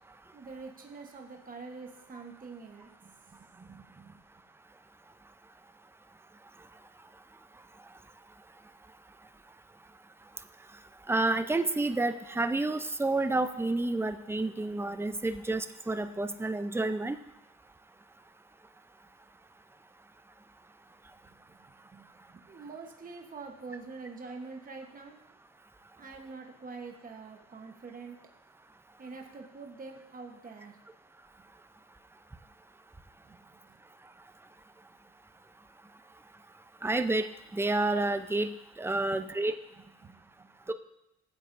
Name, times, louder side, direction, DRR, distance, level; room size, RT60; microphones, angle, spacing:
voice 1, 0.3-4.2 21.2-25.2 26.0-28.2 29.0-30.8 33.2-33.8 38.9-39.2 39.7-40.7, right 4 dB, 30° right, 2 dB, 1.1 m, -46 dB
voice 2, 11.1-17.2 36.8-37.3 37.5-39.5 40.7-40.8, right 2 dB, 10° right, 9 dB, 0.5 m, -29 dB
13.5 x 7.6 x 2.6 m, 0.86 s
cardioid pair, 90°, 30 cm